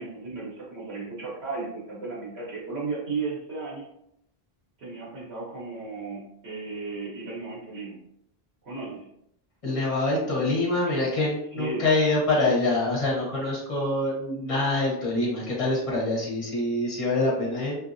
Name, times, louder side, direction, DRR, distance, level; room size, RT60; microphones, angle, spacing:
voice 1, 0.0-3.9 4.8-8.0 8.6-9.1 11.5-11.8, right 4 dB, 90° right, -6 dB, 1.2 m, -35 dB
voice 2, 9.6-17.8, left 2 dB, 35° left, -5 dB, 1.0 m, -25 dB
2.7 x 2.6 x 2.5 m, 0.77 s
omnidirectional pair, 1.0 m